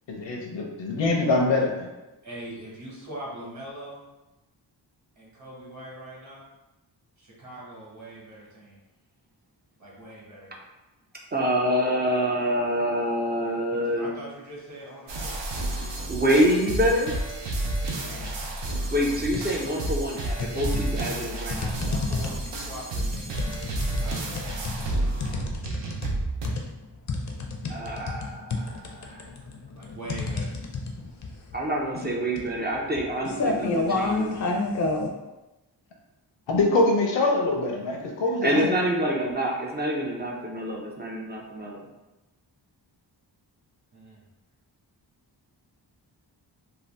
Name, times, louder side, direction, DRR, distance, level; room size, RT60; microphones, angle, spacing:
voice 1, 0.1-1.9 36.5-38.7, left 2 dB, 85° left, 1 dB, 0.7 m, -24 dB
voice 2, 2.2-4.0 5.2-6.4 7.2-8.8 9.8-10.5 13.7-15.4 17.9-18.5 21.8-23.5 23.8-24.6 29.4-30.5 43.9-44.2, right 1 dB, 40° right, -5 dB, 1.1 m, -42 dB
voice 3, 11.3-14.2 16.1-17.2 18.9-21.7 27.7-28.8 29.1-29.2 31.5-34.3 38.4-41.9, equal, 25° right, -2 dB, 0.3 m, -26 dB
sound 1, 15.1-26.5, right 2 dB, 80° right, 0.6 m, -31 dB
sound 2, 18.1-18.5 18.9-19.8 20.4-35.1, left 3 dB, 45° left, 0.4 m, -30 dB
2.7 x 2.3 x 3.2 m, 1.0 s
wide cardioid pair, 145°, 43 cm